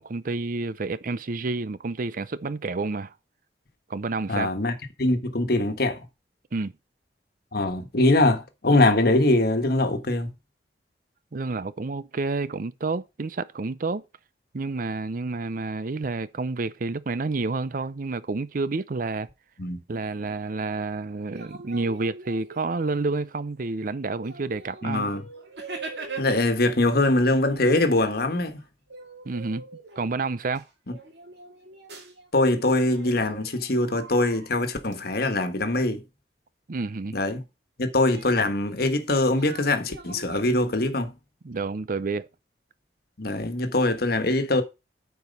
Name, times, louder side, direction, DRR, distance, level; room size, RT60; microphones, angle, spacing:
voice 1, 0.0-3.1 3.9-4.5 6.5-6.7 11.3-14.0 14.5-19.3 19.9-25.1 29.2-29.6 30.0-30.6 36.7-37.2 41.4-42.3, right 3 dB, 50° right, 0.6 m, -29 dB
voice 2, 4.3-6.0 7.5-10.3 19.6-19.8 24.8-25.2 26.2-28.6 32.3-36.0 37.1-37.4 37.8-41.1 43.2-44.6, left 2 dB, 60° left, 1.4 m, -23 dB
sound 1, 21.2-23.0 23.7-23.8 24.2-26.7 27.0-32.3 32.6-34.9 38.1-40.4, right 3 dB, 65° right, 2.5 m, -43 dB
9.3 x 4.6 x 5.4 m
head